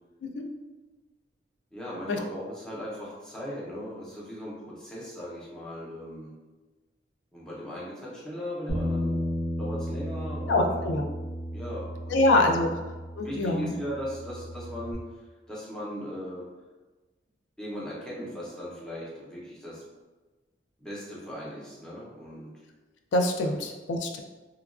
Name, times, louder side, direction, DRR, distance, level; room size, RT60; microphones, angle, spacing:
voice 1, 1.7-6.3 7.3-9.2 9.6-10.8 11.5-12.2 12.5-12.7 13.2-15.2 15.5-16.5 17.6-19.8 20.8-22.5 23.4-23.5, equal, 5° left, -7 dB, 0.6 m, -38 dB
Bass guitar, 8.7-14.9, equal, 65° left, 0.7 m, -34 dB
voice 2, 10.5-11.0 12.1-12.7 13.2-13.7 23.1-24.2, left 1 dB, 85° left, 3 dB, 0.3 m, -24 dB
2.9 x 2.3 x 2.4 m, 1.2 s
head